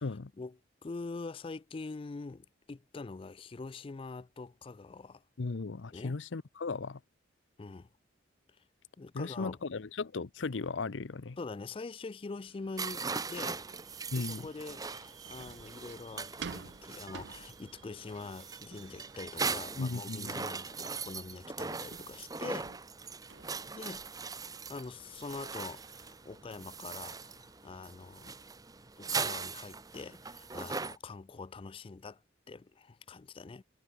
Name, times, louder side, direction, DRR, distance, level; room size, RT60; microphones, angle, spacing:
voice 1, 0.4-5.2 5.9-6.2 7.6-7.9 9.0-9.6 11.4-13.0 13.3-13.6 14.1-22.7 23.7-24.1 24.7-28.4 29.0-32.2 32.5-33.6, left 3 dB, 30° left, 0.4 m, -44 dB
voice 2, 5.4-7.0 9.1-11.4 14.1-14.5 19.8-20.4, left 3 dB, 85° left, 0.7 m, -36 dB
Subway metro underground, 12.3-30.8, right 6 dB, 90° right, 7.1 m, -63 dB
sound 1, 12.8-31.0, right 4 dB, 20° right, 0.9 m, -40 dB
sound 2, 15.3-22.8, right 6 dB, 75° right, 0.5 m, -51 dB
head